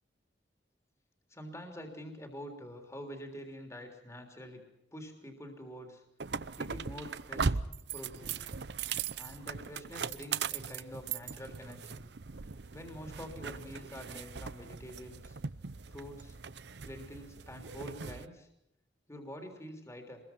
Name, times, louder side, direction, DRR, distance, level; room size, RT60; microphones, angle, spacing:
voice 1, 1.3-4.6 4.9-6.0 6.3-7.6 7.9-8.5 9.2-12.0 12.7-15.4 15.9-16.4 16.8-18.5 19.1-20.2, equal, 15° left, 4 dB, 3.4 m, -46 dB
sound 1, 6.2-18.3, right 5 dB, 75° right, 0.8 m, -39 dB
26.5 x 22.0 x 6.0 m, 0.86 s
head